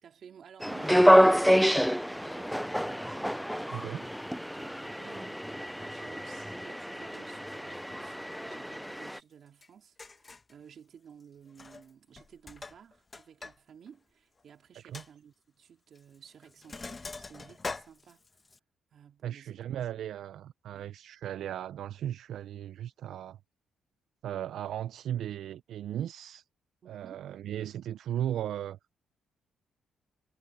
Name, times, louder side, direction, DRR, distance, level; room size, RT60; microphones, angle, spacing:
voice 1, 0.0-3.5 3.8-18.4 18.9-19.6 20.7-20.9 26.8-27.3, right 8 dB, 55° right, 3.0 m, -54 dB
sound 1, 0.6-9.2, equal, ahead, 0.4 m, -27 dB
voice 2, 3.7-4.1 14.8-15.0 19.2-23.4 24.2-26.4 26.9-28.8, right 11 dB, 75° right, 0.5 m, -36 dB
Sink (filling or washing), 9.6-9.7 10.0-10.5 11.5-11.9 12.2-13.6 13.9-14.0 14.4-14.5 14.9-15.1 16.0-16.2 16.4-18.6, left 3 dB, 25° left, 1.4 m, -42 dB
cardioid pair, 90°, 0 cm